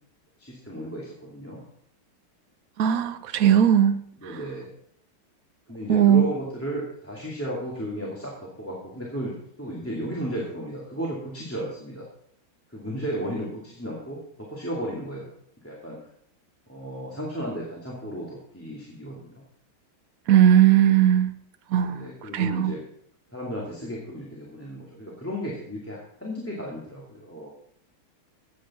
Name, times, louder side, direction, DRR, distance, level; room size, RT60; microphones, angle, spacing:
voice 1, 0.4-1.6 4.2-4.7 5.7-12.1 12.7-15.3 15.6-16.0 16.7-19.3 21.8-22.8 23.3-27.5, equal, 5° left, -5 dB, 2.0 m, -34 dB
voice 2, 2.8-4.4 5.9-6.3 20.3-21.3 21.7-22.1 22.3-22.7, right 10 dB, 80° right, 10 dB, 0.7 m, -19 dB
13.0 x 8.7 x 4.2 m, 0.66 s
omnidirectional pair, 2.3 m